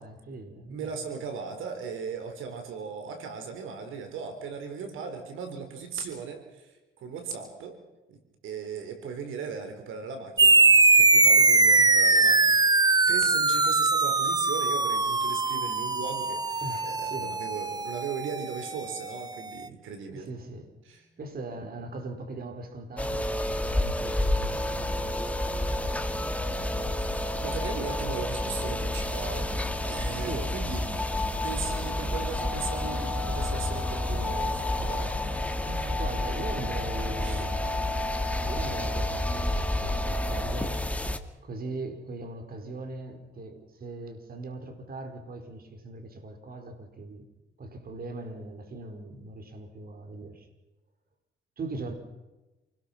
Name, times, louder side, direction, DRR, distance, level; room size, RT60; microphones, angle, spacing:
voice 1, 0.0-1.0 16.6-17.4 20.1-20.7 21.1-25.8 30.2-30.6 35.6-37.5 38.4-40.8 41.4-47.3 47.6-50.5 51.6-51.9, right 2 dB, 50° right, 6 dB, 4.9 m, -40 dB
voice 2, 0.7-7.8 8.1-20.3 20.8-21.0 26.9-30.8 31.4-35.1 37.2-37.5, right 6 dB, 85° right, 6 dB, 4.6 m, -38 dB
sound 1, 10.4-19.3, right 3 dB, 20° right, 1.0 m, -22 dB
sound 2, 23.0-41.2, left 1 dB, 5° left, 2.2 m, -29 dB
28.5 x 20.5 x 6.0 m, 1.1 s
cardioid pair, 90°, 20 cm